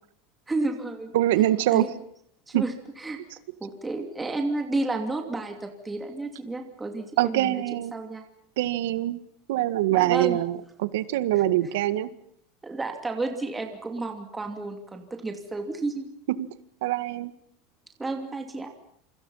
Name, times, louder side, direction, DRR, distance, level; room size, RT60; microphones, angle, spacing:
voice 1, 0.5-1.1 1.7-1.9 2.5-3.2 3.6-7.6 7.9-8.2 9.9-10.4 11.4-11.5 12.6-16.1 18.0-18.7, right 2 dB, 10° right, 5 dB, 2.8 m, -31 dB
voice 2, 1.1-1.9 2.5-2.6 7.2-7.9 8.6-9.2 9.5-12.1 16.8-17.3, right 14 dB, 80° right, 14 dB, 1.9 m, -24 dB
27.5 x 25.5 x 5.7 m, 0.69 s
supercardioid pair, 150°, 0 cm